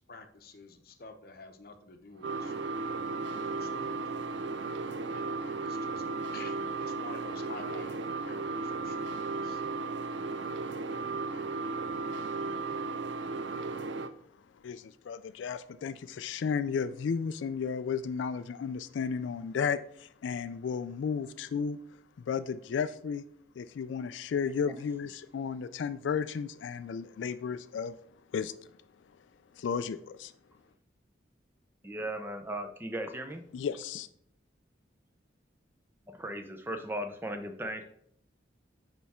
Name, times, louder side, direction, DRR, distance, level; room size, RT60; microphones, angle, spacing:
voice 1, 0.0-4.0 5.1-5.2 5.5-6.0 6.3-9.1 9.4-9.6, left 3 dB, 50° left, 6 dB, 0.8 m, -49 dB
sound 1, 2.2-14.1, right 3 dB, 80° right, 0.5 m, -35 dB
voice 2, 14.6-21.8 22.2-23.3 23.6-28.0 28.3-28.7 29.5-30.3 33.5-34.1, left 6 dB, 85° left, 13 dB, 0.3 m, -33 dB
voice 3, 31.8-33.5 36.1-37.8, right 1 dB, 10° right, 6 dB, 0.6 m, -37 dB
9.3 x 3.4 x 4.2 m, 0.66 s
head